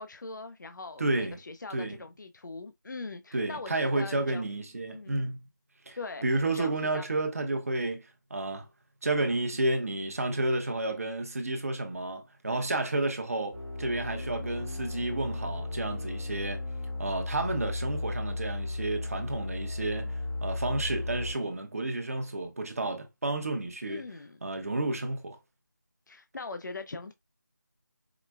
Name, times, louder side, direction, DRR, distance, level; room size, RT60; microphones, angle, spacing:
voice 1, 0.0-4.4 4.9-5.3 6.0-7.0 23.9-24.4 26.1-27.1, left 3 dB, 65° left, 0.5 m, -41 dB
voice 2, 1.0-1.3 1.7-2.0 3.3-5.4 5.9-8.7 9.0-16.6 17.0-20.1 20.4-24.0 24.4-25.4, right 2 dB, 45° right, 0.8 m, -31 dB
sound 1, 13.5-21.3, left 2 dB, 10° left, 0.8 m, -35 dB
4.8 x 2.2 x 2.3 m
figure-of-eight pair, 170°, 11 cm